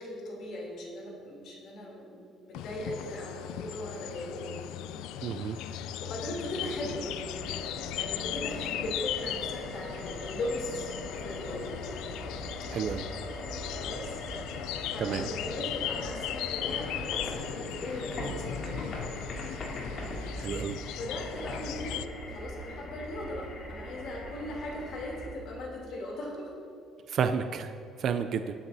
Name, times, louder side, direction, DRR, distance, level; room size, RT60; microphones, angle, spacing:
voice 1, 0.0-4.4 5.6-7.1 7.9-10.9 11.2-11.7 13.6-18.9 21.0-26.5, left 1 dB, 60° left, -2 dB, 3.0 m, -39 dB
sound 1, 2.5-22.1, left 11 dB, 85° left, 0.4 m, -38 dB
voice 2, 5.2-5.6 12.7-13.1 15.0-15.3 20.3-20.8 27.1-27.7 28.0-28.5, right 7 dB, 50° right, 9 dB, 0.4 m, -30 dB
sound 2, 6.1-25.4, right 2 dB, 25° right, 1.1 m, -47 dB
sound 3, 7.3-25.3, left 1 dB, 45° left, 2.5 m, -42 dB
19.5 x 9.1 x 2.7 m, 2.5 s
cardioid pair, 145°, 0 cm